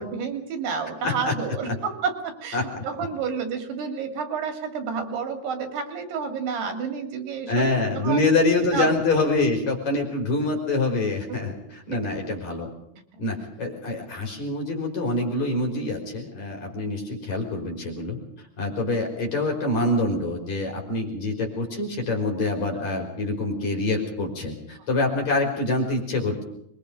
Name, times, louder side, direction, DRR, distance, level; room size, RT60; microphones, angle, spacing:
voice 1, 0.0-8.2 8.7-8.9 11.3-11.5 11.9-12.0, right 5 dB, 85° right, 5 dB, 5.0 m, -30 dB
voice 2, 1.0-1.3 2.5-2.8 7.5-11.5 11.9-12.7 13.2-18.2 18.6-26.4, left 2 dB, 45° left, 1 dB, 6.2 m, -25 dB
25.5 x 22.5 x 5.2 m, 0.76 s
omnidirectional pair, 4.5 m